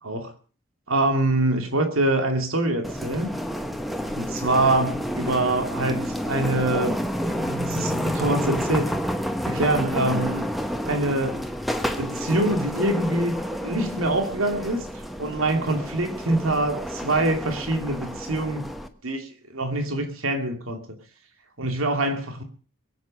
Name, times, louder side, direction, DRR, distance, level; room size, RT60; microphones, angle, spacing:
voice 1, 0.0-0.3 0.9-3.4 4.2-7.0 7.3-8.9 9.5-10.5 10.8-11.4 12.0-18.6 19.0-21.0 21.6-22.4, right 2 dB, 80° right, 2.6 m, -25 dB
sound 1, 2.8-18.9, equal, ahead, 1.1 m, -29 dB
22.5 x 8.3 x 6.6 m
head